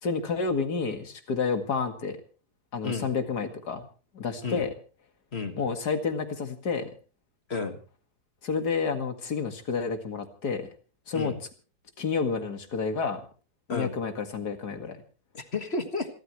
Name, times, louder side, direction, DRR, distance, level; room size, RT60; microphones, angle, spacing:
voice 1, 0.0-2.2 2.7-3.8 4.1-4.7 5.6-6.9 8.4-10.7 11.1-11.3 12.0-13.2 13.7-15.0, left 5 dB, 80° left, 7 dB, 2.6 m, -30 dB
voice 2, 7.5-7.8 11.1-11.4 13.7-14.0 15.3-16.1, left 4 dB, 40° left, 7 dB, 1.9 m, -31 dB
27.0 x 13.0 x 3.1 m, 0.36 s
omnidirectional pair, 1.7 m